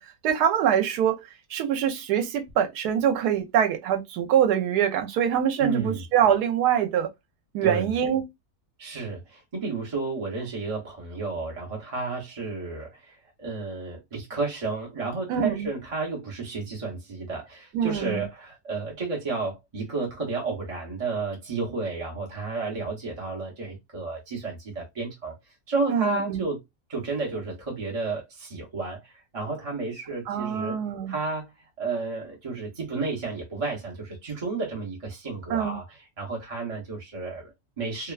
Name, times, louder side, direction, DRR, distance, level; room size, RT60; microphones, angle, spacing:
voice 1, 0.2-7.1 7.5-8.3 15.3-15.7 17.7-18.2 25.9-26.4 30.3-31.1 35.5-35.8, right 9 dB, 80° right, 1.1 m, -24 dB
voice 2, 5.6-6.0 7.6-7.9 8.8-26.6 26.9-30.8 31.1-31.5 31.8-38.1, right 3 dB, 40° right, 0.5 m, -32 dB
2.9 x 2.1 x 2.3 m
omnidirectional pair, 1.7 m